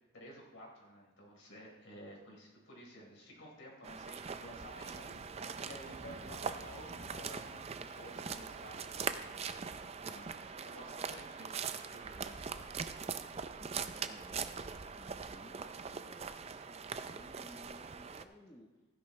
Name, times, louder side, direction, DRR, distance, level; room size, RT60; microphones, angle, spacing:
voice 1, 0.1-9.6 10.0-12.4, equal, 65° left, -2 dB, 4.0 m, -53 dB
sound 1, 3.8-18.2, right 6 dB, 30° right, 0.4 m, -42 dB
Thunder / Rain, 4.6-10.3, right 1 dB, 45° right, 1.0 m, -55 dB
voice 2, 13.6-18.7, equal, 15° left, -3 dB, 1.1 m, -57 dB
16.0 x 10.5 x 3.2 m, 1.2 s
head